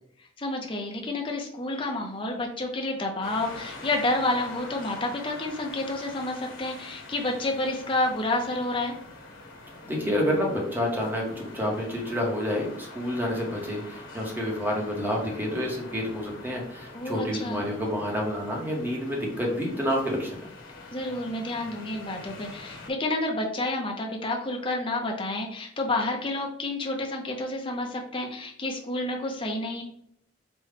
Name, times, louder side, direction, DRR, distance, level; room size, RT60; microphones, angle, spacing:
voice 1, 0.4-9.0 16.9-17.7 20.9-29.8, left 2 dB, 25° left, 1 dB, 0.6 m, -29 dB
sound 1, 3.2-22.9, left 2 dB, 85° left, 1.1 m, -45 dB
voice 2, 9.9-20.5, equal, 10° right, -1 dB, 0.9 m, -29 dB
5.1 x 2.2 x 3.3 m, 0.72 s
head